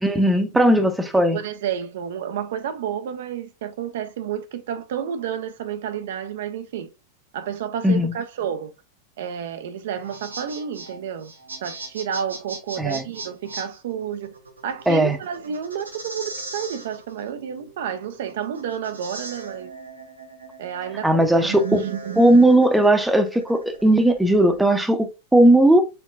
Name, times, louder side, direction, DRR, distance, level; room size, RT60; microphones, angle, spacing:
voice 1, 0.0-1.4 7.8-8.1 12.8-13.0 14.9-15.2 21.0-21.8 22.2-25.8, right 1 dB, 5° right, 0.7 m, -17 dB
voice 2, 1.1-6.9 7.3-8.7 9.2-11.3 11.6-14.3 14.6-19.7 20.6-22.2, right 8 dB, 55° right, 0.4 m, -30 dB
sound 1, 9.9-24.6, right 3 dB, 75° right, 0.8 m, -39 dB
4.5 x 3.6 x 2.4 m
figure-of-eight pair, 90°, 0 cm